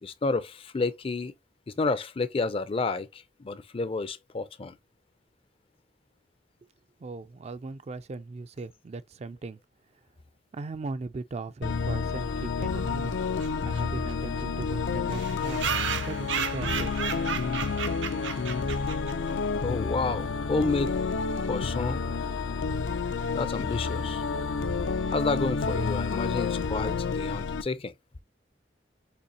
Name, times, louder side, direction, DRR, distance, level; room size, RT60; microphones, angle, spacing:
voice 1, 0.0-1.3 1.7-4.8 19.6-20.9 21.4-22.0 23.3-24.2 25.1-27.9, left 3 dB, 30° left, 0.4 m, -30 dB
voice 2, 7.0-9.6 10.5-13.2 13.6-15.7 16.1-17.0, right 3 dB, 35° right, 0.4 m, -38 dB
sound 1, 11.6-27.6, left 4 dB, 85° left, 0.5 m, -30 dB
sound 2, 13.4-13.5 13.7-13.8 14.1-14.2 14.4-14.5 15.1-19.3, right 7 dB, 80° right, 0.8 m, -33 dB
6.7 x 2.8 x 2.7 m
head